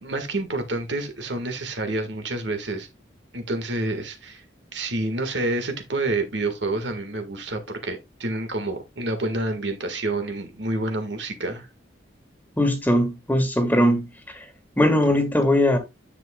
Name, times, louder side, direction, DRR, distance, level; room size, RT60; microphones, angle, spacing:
voice 1, 0.0-2.9 3.3-4.4 4.7-11.7, right 2 dB, 70° right, 1.8 m, -28 dB
voice 2, 12.6-14.4 14.8-15.8, left 1 dB, 10° left, 1.6 m, -20 dB
9.6 x 7.4 x 2.3 m
head